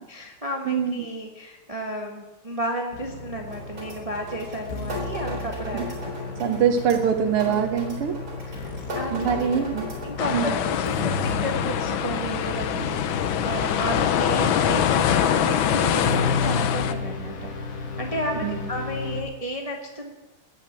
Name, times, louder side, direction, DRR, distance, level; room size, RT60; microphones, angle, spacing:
voice 1, 0.1-6.4 7.4-7.7 8.5-9.7 10.0-20.1, right 1 dB, 20° right, 1 dB, 1.3 m, -33 dB
voice 2, 0.7-1.1 5.7-5.9 6.4-8.1 9.1-9.9 10.3-10.5 18.4-18.6, right 7 dB, 80° right, 4 dB, 1.8 m, -23 dB
sound 1, 2.9-19.2, left 3 dB, 45° left, 1.8 m, -33 dB
sound 2, 3.5-10.1, left 1 dB, 60° right, 4.9 m, -37 dB
sound 3, 10.2-16.9, left 9 dB, 70° left, 1.5 m, -24 dB
18.5 x 6.7 x 8.9 m, 1.1 s
omnidirectional pair, 2.4 m